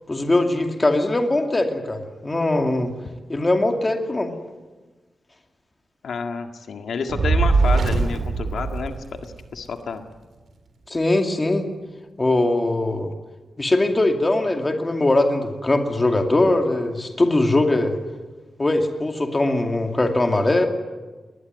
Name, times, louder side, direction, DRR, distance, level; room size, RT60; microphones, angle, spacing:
voice 1, 0.1-2.9 3.3-4.3 10.9-11.7 12.2-13.1 13.6-18.0 18.6-20.7, left 2 dB, 20° left, 4 dB, 2.4 m, -21 dB
voice 2, 6.0-9.0 9.2-10.0, left 5 dB, 75° left, 5 dB, 1.8 m, -29 dB
Fire, 7.1-9.5, right 4 dB, 60° right, 3.4 m, -21 dB
22.0 x 20.0 x 9.4 m, 1.3 s
wide cardioid pair, 155°, 0 cm